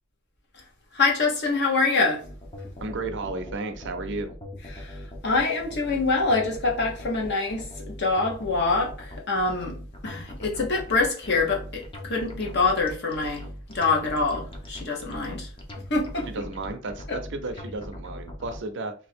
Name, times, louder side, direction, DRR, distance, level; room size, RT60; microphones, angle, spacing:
voice 1, 0.9-2.2 4.7-9.8 10.0-13.4 13.7-15.5 15.9-16.3 17.1-17.2, left 3 dB, 50° left, 1.1 m, -25 dB
sound 1, 2.2-18.6, left 1 dB, 25° left, 0.7 m, -40 dB
voice 2, 2.8-4.3 16.3-18.9, right 2 dB, 55° right, 0.6 m, -33 dB
2.8 x 2.8 x 4.3 m
head